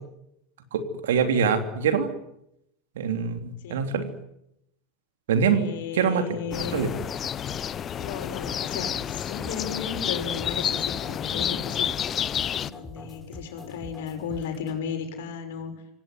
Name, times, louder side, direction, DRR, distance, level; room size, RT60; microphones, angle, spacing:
voice 1, 0.7-2.1 3.0-4.1 5.3-5.6 5.9-6.3 6.7-6.9, right 6 dB, 70° right, 7 dB, 3.4 m, -24 dB
voice 2, 5.4-6.9 8.0-12.3 12.7-15.7, left 7 dB, 65° left, 5 dB, 6.6 m, -35 dB
sound 1, 6.5-12.7, left 9 dB, 35° left, 0.9 m, -30 dB
sound 2, 7.0-14.8, left 2 dB, 15° left, 5.3 m, -44 dB
26.5 x 18.5 x 9.8 m, 0.80 s
hypercardioid pair, 85°, 0 cm